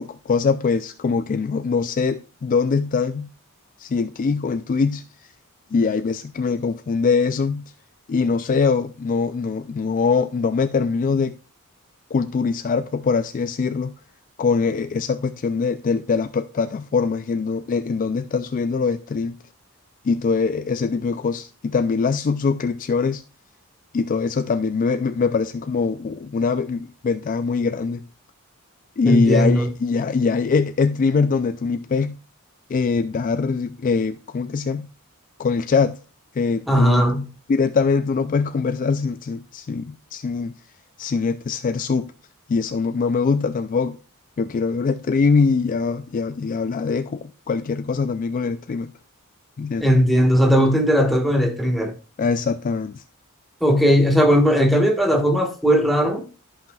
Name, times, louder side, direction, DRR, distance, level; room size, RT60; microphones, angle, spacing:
voice 1, 0.0-3.3 3.8-5.0 5.7-7.6 8.1-11.4 12.1-13.9 14.4-19.4 20.0-23.2 23.9-28.0 29.0-32.2 32.7-34.9 35.4-36.0 36.4-37.1 37.5-40.5 41.0-42.1 42.5-44.0 44.4-48.9 49.6-49.9 52.2-53.0, left 5 dB, 40° left, 0.3 m, -22 dB
voice 2, 29.0-29.7 36.7-37.2 49.8-51.9 53.6-56.2, equal, ahead, 1.3 m, -17 dB
13.5 x 5.6 x 2.3 m
head